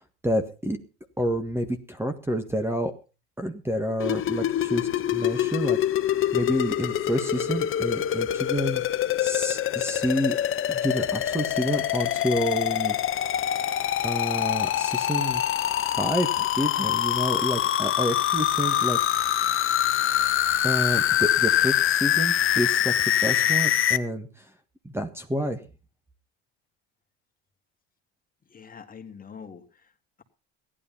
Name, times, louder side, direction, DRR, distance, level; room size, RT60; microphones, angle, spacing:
voice 1, 0.2-0.8 1.2-2.9 3.4-5.8 6.3-8.8 9.2-10.4 10.7-13.0 14.0-19.0 20.6-24.5 24.9-25.6, equal, 10° right, 8 dB, 1.6 m, -29 dB
sound 1, 4.0-24.0, left 11 dB, 45° left, 1.1 m, -25 dB
voice 2, 28.5-29.9, left 6 dB, 30° left, 6 dB, 2.4 m, -44 dB
15.0 x 11.5 x 5.5 m, 0.34 s
supercardioid pair, 100°, 30 cm